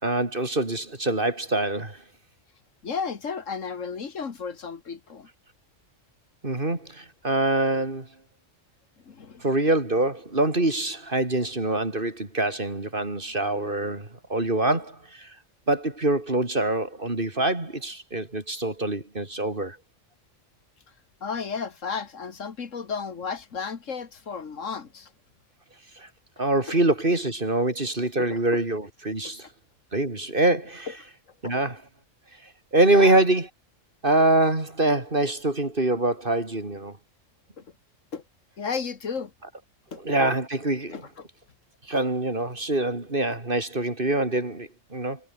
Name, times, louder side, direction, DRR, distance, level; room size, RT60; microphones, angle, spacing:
voice 1, 0.0-2.0 6.4-8.1 9.4-15.4 15.7-19.8 26.0-26.1 26.4-29.5 29.9-30.9 31.4-31.8 32.7-33.5 34.0-36.9 40.0-41.0 41.9-45.2, right 2 dB, 45° right, 4.0 m, -25 dB
voice 2, 2.8-5.3 9.1-9.5 21.2-25.1 28.2-28.6 29.4-29.5 30.9-31.0 31.4-31.5 32.9-33.2 37.6-37.7 38.1-38.2 38.6-39.3 39.9-40.0 40.9-41.3, left 5 dB, 80° left, 2.1 m, -33 dB
omnidirectional pair, 1.3 m